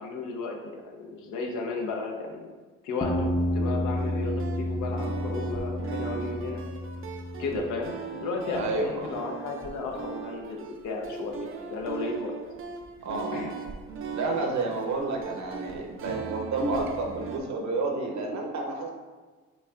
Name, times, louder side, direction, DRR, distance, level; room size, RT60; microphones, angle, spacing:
voice 1, 0.0-2.5 2.8-6.6 7.4-12.3 13.3-13.5, left 3 dB, 80° left, 1 dB, 0.8 m, -34 dB
sound 1, 3.0-7.7, left 1 dB, 15° left, 0.4 m, -30 dB
sound 2, 4.0-17.4, right 6 dB, 45° right, 0.5 m, -39 dB
voice 2, 8.5-9.1 13.0-13.5 14.1-18.9, right 3 dB, 65° right, 2 dB, 0.8 m, -30 dB
5.2 x 3.5 x 2.4 m, 1.3 s
cardioid pair, 90°, 30 cm